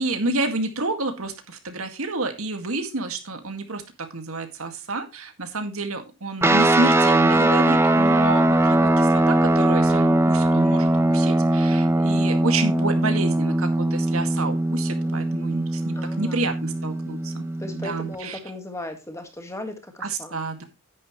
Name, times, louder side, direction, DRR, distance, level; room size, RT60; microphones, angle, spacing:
voice 1, 0.0-17.5 17.7-18.4 20.0-20.6, right 3 dB, 80° right, 6 dB, 2.0 m, -29 dB
sound 1, 6.4-18.1, right 1 dB, 10° right, 0.8 m, -20 dB
voice 2, 11.4-11.8 15.0-15.3 15.9-16.4 17.6-20.4, left 1 dB, 15° left, 6 dB, 1.7 m, -37 dB
10.0 x 9.9 x 3.1 m, 0.25 s
head